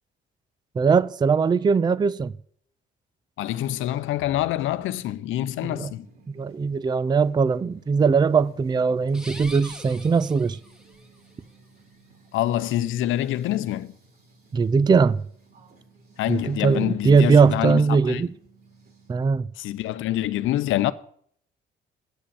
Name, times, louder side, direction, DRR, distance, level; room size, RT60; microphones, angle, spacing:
voice 1, 0.8-2.3 5.7-5.9 6.4-10.6 14.5-15.2 16.3-18.3 19.1-19.5, right 5 dB, 20° right, 0.4 m, -20 dB
voice 2, 3.4-6.1 12.3-13.9 16.2-18.2 19.6-20.9, left 13 dB, 85° left, 0.7 m, -26 dB
sound 1, 4.6-19.3, right 3 dB, 50° right, 3.3 m, -54 dB
sound 2, 9.1-11.1, equal, 5° right, 2.0 m, -42 dB
8.4 x 7.7 x 8.4 m
cardioid pair, 90°, 20 cm